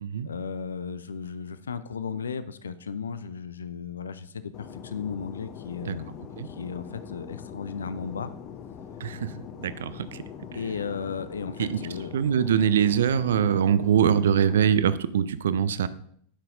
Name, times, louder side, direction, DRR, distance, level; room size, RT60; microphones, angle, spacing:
voice 1, 0.2-6.2 6.4-8.3 10.5-12.1, left 6 dB, 70° left, 13 dB, 0.4 m, -35 dB
Fixed-wing aircraft airplane, 4.5-14.7, left 8 dB, 35° left, 0.7 m, -42 dB
voice 2, 12.1-15.9, right 8 dB, 60° right, 15 dB, 0.4 m, -23 dB
11.0 x 5.7 x 2.6 m, 0.63 s
figure-of-eight pair, 90°, 0 cm